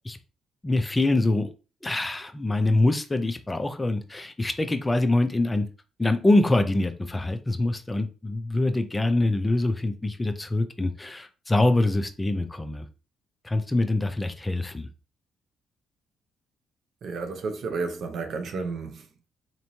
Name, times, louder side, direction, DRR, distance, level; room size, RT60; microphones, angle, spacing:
voice 1, 0.6-1.5 1.8-5.7 6.0-12.8 13.4-14.9, left 2 dB, 15° left, 0.5 m, -24 dB
voice 2, 17.0-19.3, right 4 dB, 65° right, 0.7 m, -32 dB
4.3 x 2.9 x 2.8 m
cardioid pair, 90°, 0 cm